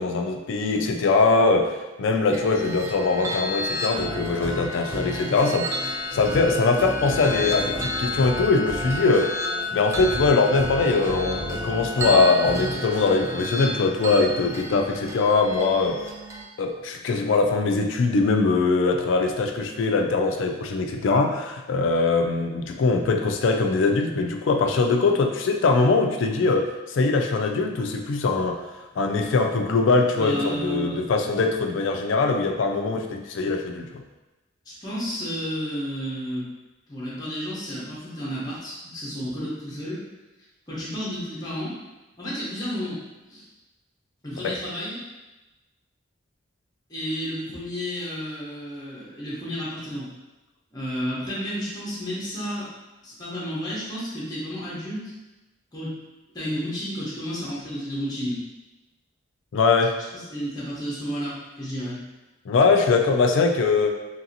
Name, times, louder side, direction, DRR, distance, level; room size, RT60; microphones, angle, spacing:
voice 1, 0.0-1.7 2.0-5.7 6.1-9.3 9.7-16.0 16.6-28.6 29.0-34.0 44.4-44.5 59.5-60.0 62.5-64.0, left 3 dB, 70° left, 3 dB, 0.4 m, -22 dB
sound 1, 2.3-16.4, left 1 dB, 15° right, 0.3 m, -32 dB
sound 2, 3.9-13.5, right 1 dB, 45° right, 1.1 m, -34 dB
voice 2, 30.2-31.0 34.7-36.5 36.9-40.0 40.7-41.7 42.2-43.0 43.3-43.4 44.2-45.0 46.9-50.1 50.7-52.7 53.0-55.1 55.7-55.9 56.3-58.4 60.1-62.0, equal, 20° left, -8 dB, 0.8 m, -31 dB
2.9 x 2.7 x 2.8 m, 1.1 s
head